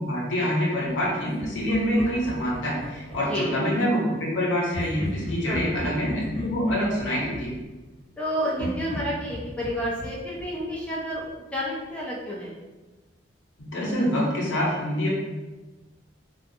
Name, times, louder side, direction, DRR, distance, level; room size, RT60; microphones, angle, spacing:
voice 1, 0.0-7.6 13.6-15.1, equal, 80° left, -3 dB, 0.8 m, -26 dB
Laughter, 1.4-3.5 4.7-8.2 8.6-11.3, equal, 40° left, 1.0 m, -37 dB
voice 2, 8.2-11.2 11.5-12.5, equal, 5° left, -5 dB, 0.4 m, -30 dB
2.3 x 2.3 x 2.6 m, 1.2 s
head